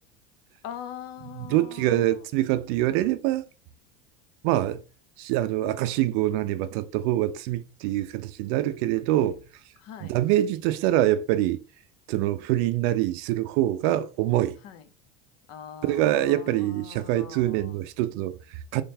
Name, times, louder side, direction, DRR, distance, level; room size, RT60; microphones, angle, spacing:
voice 1, 0.6-2.0 9.8-10.1 14.6-14.8 15.5-17.8, left 9 dB, 50° left, 0.7 m, -42 dB
voice 2, 1.3-3.4 4.4-4.8 5.2-9.4 10.0-11.6 12.1-14.6 15.8-18.8, right 14 dB, 65° right, 0.5 m, -25 dB
3.8 x 3.3 x 2.7 m
supercardioid pair, 105°, 33 cm